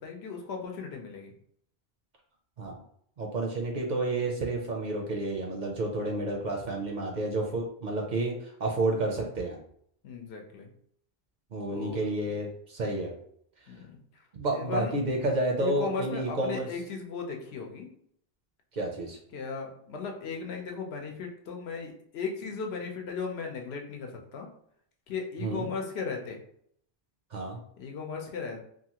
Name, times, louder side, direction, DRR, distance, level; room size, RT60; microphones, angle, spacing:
voice 1, 0.0-1.3 10.0-10.7 11.7-12.0 13.7-13.8 14.5-15.0 15.6-17.9 19.3-24.5 25.1-26.4 27.8-28.6, left 5 dB, 80° left, 2 dB, 0.9 m, -36 dB
voice 2, 3.2-9.6 11.5-13.1 14.3-16.7 18.7-19.2 25.4-25.7 27.3-27.6, right 2 dB, 55° right, 0 dB, 0.6 m, -30 dB
2.8 x 2.4 x 2.8 m, 0.67 s
omnidirectional pair, 1.1 m